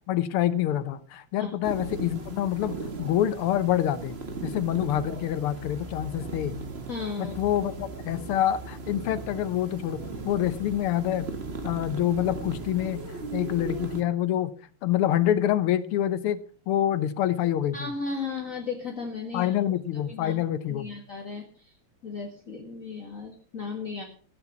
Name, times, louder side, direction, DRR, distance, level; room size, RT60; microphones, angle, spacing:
voice 1, 0.1-4.2 4.4-6.6 7.2-11.3 11.6-13.0 13.3-14.5 14.8-16.4 16.7-17.9 19.3-20.9, left 11 dB, 85° left, 13 dB, 1.8 m, -26 dB
sound 1, 1.6-14.0, right 3 dB, 30° right, 1.6 m, -37 dB
voice 2, 6.9-7.3 17.7-19.6 19.9-20.4 20.7-21.8 22.0-24.0, left 4 dB, 40° left, 1 dB, 1.9 m, -35 dB
14.5 x 8.8 x 6.0 m, 0.43 s
omnidirectional pair, 2.4 m